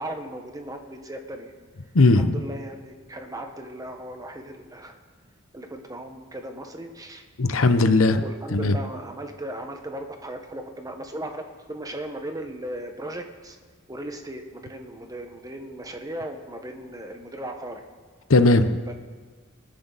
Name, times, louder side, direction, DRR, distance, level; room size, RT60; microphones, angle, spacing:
voice 1, 0.0-1.5 2.1-5.0 5.5-7.2 8.1-13.6 13.9-17.8 18.9-19.0, right 1 dB, 20° right, 4 dB, 1.3 m, -37 dB
voice 2, 1.9-2.4 7.4-8.2 8.5-8.8 18.3-18.8, left 2 dB, 80° left, 10 dB, 0.9 m, -18 dB
26.5 x 10.0 x 4.1 m, 1.5 s
head